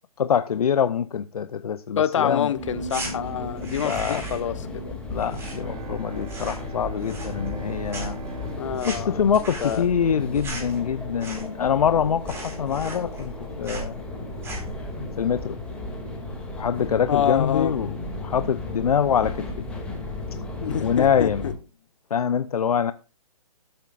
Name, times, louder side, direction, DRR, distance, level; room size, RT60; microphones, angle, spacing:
voice 1, 0.2-2.5 3.8-4.2 5.1-8.2 8.8-13.3 13.6-14.0 15.2-15.6 16.6-19.7 20.8-21.4 22.1-22.9, left 8 dB, 75° left, 0.6 m, -24 dB
voice 2, 2.0-4.9 8.6-9.2 9.6-9.9 17.1-17.8 20.6-21.5, left 9 dB, 55° left, 1.2 m, -27 dB
sound 1, 2.5-21.5, left 2 dB, 5° left, 2.4 m, -35 dB
sound 2, 2.9-3.1 3.5-4.5 4.8-6.0 6.2-6.7 7.0-7.6 7.9-11.7 12.0-12.1 12.3-13.4 13.6-13.9 14.3-14.8, right 2 dB, 15° right, 4.5 m, -37 dB
Bowed string instrument, 5.1-10.4, right 3 dB, 80° right, 2.3 m, -42 dB
18.0 x 8.9 x 2.5 m
hypercardioid pair, 150°, 19 cm